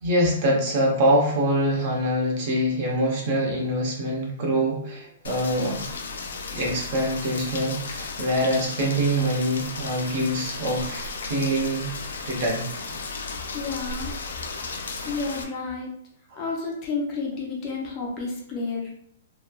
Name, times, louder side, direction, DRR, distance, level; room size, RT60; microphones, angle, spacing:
voice 1, 0.0-5.8 6.5-11.9 12.2-12.6 16.3-16.4, equal, 35° right, -1 dB, 0.7 m, -24 dB
Rain, 5.2-15.4, left 4 dB, 85° left, 0.4 m, -34 dB
voice 2, 13.5-14.1 15.0-15.9 16.4-18.9, left 4 dB, 25° left, -2 dB, 0.5 m, -30 dB
3.0 x 2.2 x 2.2 m, 0.70 s
hypercardioid pair, 165°, 0 cm